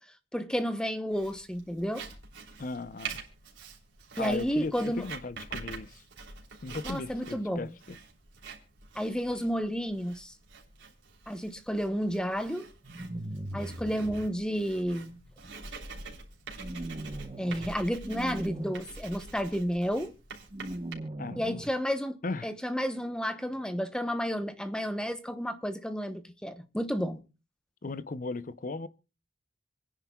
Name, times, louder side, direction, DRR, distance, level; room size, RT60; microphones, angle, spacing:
voice 1, 0.3-2.1 4.2-5.1 6.8-7.7 8.9-10.3 11.3-12.7 13.5-15.2 17.4-20.1 21.4-27.2, equal, 5° left, 0.9 m, -31 dB
Writing, 1.1-20.9, right 4 dB, 80° right, 3.3 m, -46 dB
voice 2, 2.6-3.2 4.2-6.0 6.6-8.0 21.2-21.6 22.2-22.5 27.8-28.9, left 3 dB, 45° left, 0.6 m, -37 dB
sound 1, 12.8-14.3 16.6-17.7 18.0-18.7 20.5-21.7, right 1 dB, 30° right, 1.0 m, -39 dB
27.5 x 10.0 x 2.3 m
head